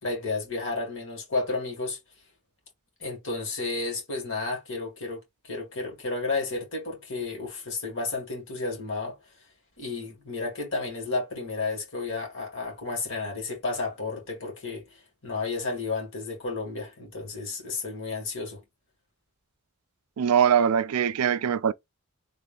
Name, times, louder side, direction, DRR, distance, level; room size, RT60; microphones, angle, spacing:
voice 1, 0.0-2.0 3.0-9.1 9.8-14.9 15.2-18.6, left 3 dB, 60° left, 2.2 m, -32 dB
voice 2, 20.2-21.7, right 8 dB, 85° right, 0.4 m, -22 dB
3.5 x 2.6 x 3.8 m
head